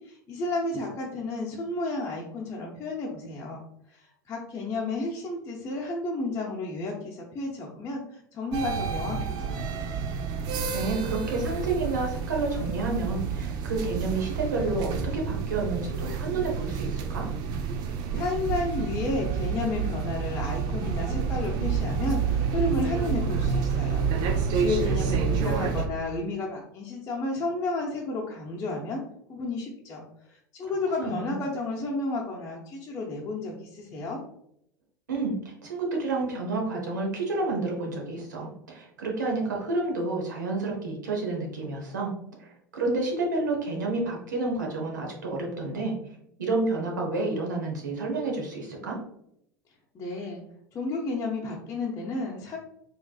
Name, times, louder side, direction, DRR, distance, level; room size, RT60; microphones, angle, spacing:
voice 1, 0.0-9.6 18.1-29.0 29.3-34.2 49.9-50.4 50.7-52.6, left 2 dB, 30° left, -4 dB, 0.8 m, -32 dB
sound 1, 8.5-25.9, right 6 dB, 45° right, 0.5 m, -29 dB
voice 2, 10.4-17.3 30.6-30.7 31.0-31.4 35.1-42.1 42.4-45.9 46.4-49.0, right 3 dB, 75° right, 0 dB, 1.1 m, -30 dB
4.7 x 3.2 x 2.3 m, 0.73 s
figure-of-eight pair, 75°, 10 cm